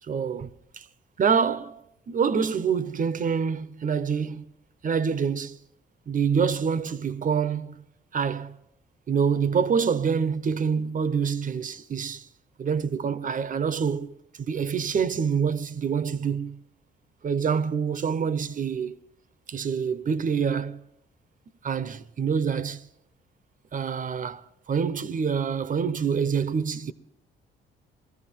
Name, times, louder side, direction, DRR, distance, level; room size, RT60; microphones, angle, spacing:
voice 1, 0.1-0.9 1.2-1.8 2.1-4.5 4.8-5.6 6.1-7.8 8.1-8.6 9.1-12.3 12.6-16.6 17.2-19.0 19.5-20.8 21.6-22.9 23.7-24.4 24.7-26.9, right 6 dB, 40° right, 0.8 m, -26 dB
21.0 x 14.5 x 4.5 m
cardioid pair, 90°, 20 cm